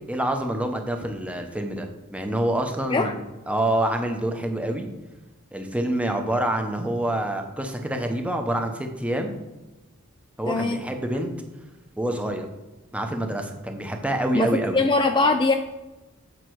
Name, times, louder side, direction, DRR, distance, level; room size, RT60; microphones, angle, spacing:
voice 1, 0.1-3.1 3.5-4.9 5.5-9.4 10.4-11.3 12.0-12.5 12.9-14.8, right 1 dB, 5° right, 4 dB, 0.9 m, -26 dB
voice 2, 10.5-10.8 14.3-15.6, left 3 dB, 20° left, 6 dB, 0.4 m, -21 dB
8.3 x 5.6 x 4.7 m, 1.1 s
head